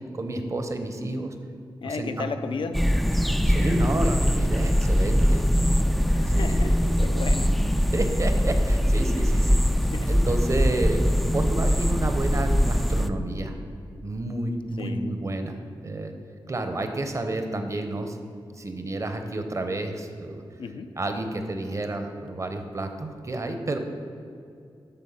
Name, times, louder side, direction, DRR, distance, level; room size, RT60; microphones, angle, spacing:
voice 1, 0.1-1.3 1.8-2.3 3.5-5.5 6.3-6.7 7.0-7.2 7.9-9.6 10.1-11.0 11.3-13.5 14.0-16.1 16.5-18.2 18.6-20.4 21.0-23.8, right 2 dB, 35° right, 6 dB, 0.9 m, -30 dB
voice 2, 1.8-2.7 6.1-7.5 9.8-10.1 14.8-15.1 20.6-20.9, left 4 dB, 70° left, 8 dB, 0.6 m, -34 dB
sound 1, 2.7-13.1, equal, ahead, 0.4 m, -22 dB
12.5 x 4.4 x 5.7 m, 2.5 s
wide cardioid pair, 105°, 9 cm